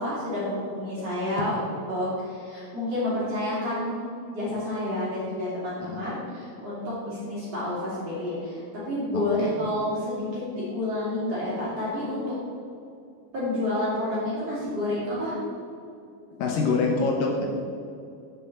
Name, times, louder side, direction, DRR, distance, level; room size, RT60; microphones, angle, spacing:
voice 1, 0.0-4.0 4.3-8.6 8.8-12.2 13.3-15.3, left 1 dB, 40° right, -9 dB, 3.1 m, -29 dB
voice 2, 9.1-9.5 16.3-17.5, left 4 dB, 70° left, 0 dB, 2.2 m, -25 dB
7.7 x 6.6 x 7.1 m, 2.5 s
omnidirectional pair, 5.2 m